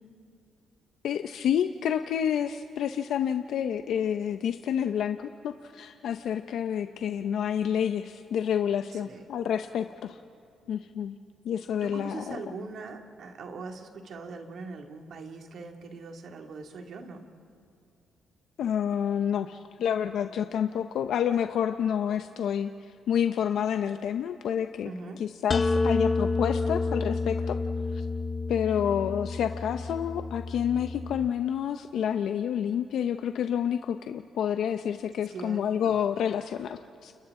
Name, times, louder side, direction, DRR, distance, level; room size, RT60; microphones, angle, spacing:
voice 1, 1.0-10.2 10.7-11.2 11.4-12.4 18.6-24.9 25.2-27.6 27.9-28.1 28.5-37.1, left 8 dB, 70° left, 8 dB, 0.7 m, -29 dB
voice 2, 8.9-9.2 11.8-17.3 24.8-25.2 35.3-36.0, right 4 dB, 65° right, 3 dB, 2.3 m, -41 dB
sound 1, 25.5-31.3, left 3 dB, 40° left, 1.0 m, -29 dB
30.0 x 29.0 x 3.8 m, 2.5 s
cardioid pair, 90°, 0 cm